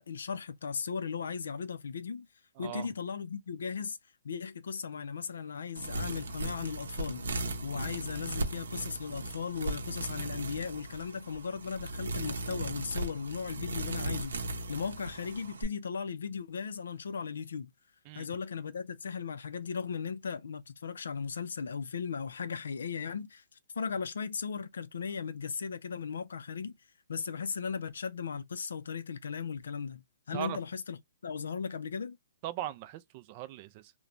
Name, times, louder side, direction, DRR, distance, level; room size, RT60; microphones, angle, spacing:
voice 1, 0.0-2.3 2.6-4.0 4.2-7.3 7.6-17.7 18.2-23.4 23.8-26.8 27.1-30.0 30.3-31.0 31.2-32.2, left 6 dB, 80° left, 0.4 m, -37 dB
voice 2, 2.6-2.9 18.1-18.3 30.3-30.6 32.4-33.9, right 13 dB, 35° right, 0.3 m, -39 dB
sound 1, 5.7-15.6, right 2 dB, 85° right, 0.7 m, -37 dB
2.9 x 2.1 x 2.5 m
hypercardioid pair, 155°, 0 cm